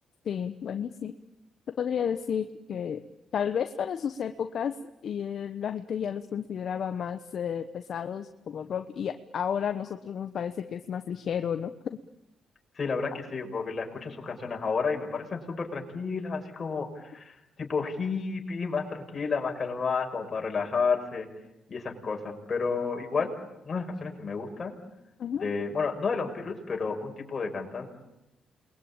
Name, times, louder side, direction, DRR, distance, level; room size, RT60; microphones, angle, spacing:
voice 1, 0.2-1.1 1.8-3.0 3.3-4.8 5.0-11.7 25.2-25.5, left 8 dB, 60° left, 8 dB, 1.1 m, -32 dB
voice 2, 12.8-21.3 21.7-23.3 23.6-24.7 25.4-27.9, left 5 dB, 40° left, 2 dB, 6.0 m, -31 dB
28.5 x 22.0 x 8.9 m, 0.91 s
cardioid pair, 90°, 0 cm